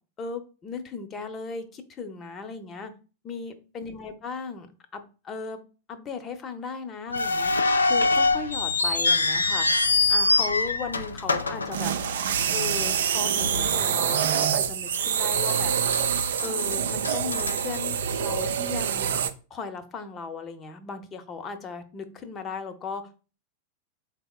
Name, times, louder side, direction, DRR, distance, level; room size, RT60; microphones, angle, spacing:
voice 1, 0.2-2.9 3.2-4.7 4.9-5.6 5.9-7.5 7.8-9.7 10.1-11.9 12.5-16.1 16.4-19.1 19.5-23.0, left 5 dB, 25° left, 8 dB, 0.7 m, -36 dB
sound 1, 7.1-12.4 12.7-12.8 13.6-13.8 14.2-14.3 14.9-15.5 15.9-18.3, left 3 dB, 75° left, 0.3 m, -24 dB
sound 2, 11.4-19.3, right 8 dB, 60° right, 0.4 m, -26 dB
4.2 x 3.4 x 2.3 m, 0.35 s
figure-of-eight pair, 90°, 0 cm